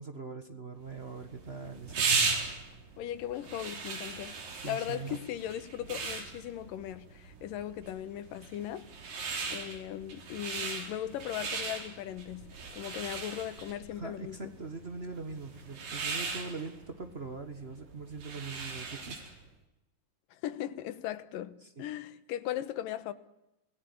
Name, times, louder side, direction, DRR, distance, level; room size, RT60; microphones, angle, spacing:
voice 1, 0.0-2.1 4.6-5.2 14.0-19.2 21.6-21.9, right 4 dB, 40° right, 0.8 m, -42 dB
sound 1, 0.9-19.4, right 4 dB, 85° right, 5.5 m, -37 dB
voice 2, 3.0-4.4 4.6-8.9 9.5-14.5 20.3-23.1, left 11 dB, 90° left, 2.8 m, -38 dB
26.5 x 17.5 x 9.9 m
omnidirectional pair, 3.9 m